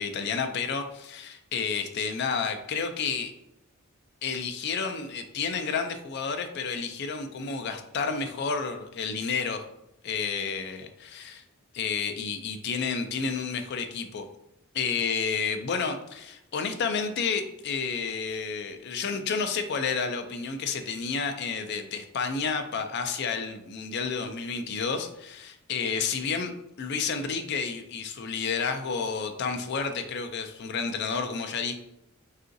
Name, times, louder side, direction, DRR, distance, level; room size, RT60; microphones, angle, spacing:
voice 1, 0.0-3.3 4.2-9.6 10.0-11.4 11.7-14.3 14.7-26.5 26.8-31.7, left 5 dB, 50° left, 7 dB, 0.3 m, -30 dB
3.7 x 2.4 x 2.6 m, 0.84 s
head